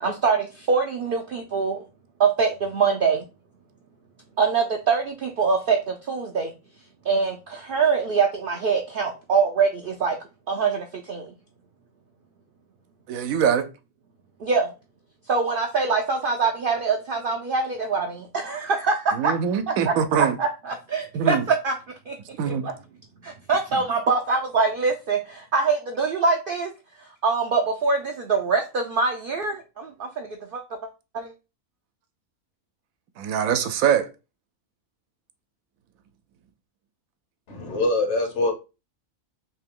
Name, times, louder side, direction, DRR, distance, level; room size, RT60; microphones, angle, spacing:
voice 1, 0.0-1.8 2.2-3.3 4.4-6.5 7.0-10.2 10.5-11.3 14.4-14.7 15.3-19.3 19.7-21.7 22.1-22.2 22.6-22.7 23.2-26.7 27.0-30.6 31.1-31.3, right 4 dB, 65° right, 0.5 m, -24 dB
voice 2, 13.1-13.7 19.1-20.3 21.1-21.4 22.4-22.7 33.2-34.1, right 8 dB, 85° right, 1.0 m, -23 dB
voice 3, 37.5-38.5, left 2 dB, 60° left, 1.2 m, -23 dB
3.1 x 2.8 x 3.6 m
omnidirectional pair, 1.4 m